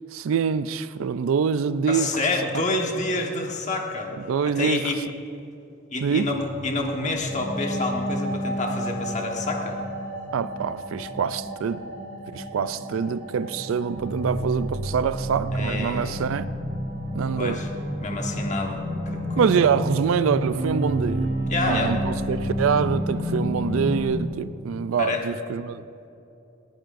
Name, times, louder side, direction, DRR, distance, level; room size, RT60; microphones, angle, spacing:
voice 1, 0.1-2.1 2.5-2.6 4.3-4.9 6.0-6.3 10.3-11.8 12.3-16.5 17.1-17.6 19.4-21.3 21.7-25.8, right 6 dB, 75° right, 0.4 m, -25 dB
voice 2, 1.9-4.1 4.4-5.0 5.9-6.4 6.6-9.8 15.5-16.1 17.4-17.7 18.0-18.8 19.1-19.5 20.5-20.7 21.5-22.0 25.0-25.2, left 2 dB, 35° left, 1.4 m, -28 dB
sound 1, 6.1-24.1, equal, 55° right, 3.3 m, -30 dB
19.0 x 15.0 x 2.6 m
head